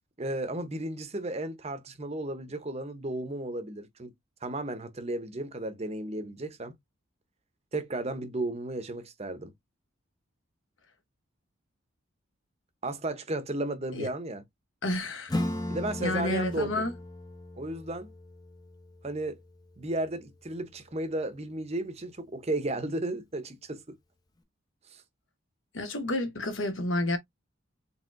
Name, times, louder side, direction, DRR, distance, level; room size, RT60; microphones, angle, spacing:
voice 1, 0.2-4.1 4.4-6.7 7.7-9.5 12.8-14.4 15.7-16.9 17.6-18.1 19.0-19.4 19.8-24.0 24.9-25.0, right 2 dB, 30° right, 0.7 m, -34 dB
voice 2, 14.8-15.4 16.0-16.9 25.7-27.2, left 1 dB, 65° left, 0.9 m, -30 dB
Acoustic guitar / Strum, 15.3-20.5, left 1 dB, 20° left, 0.6 m, -37 dB
4.4 x 3.5 x 2.5 m
head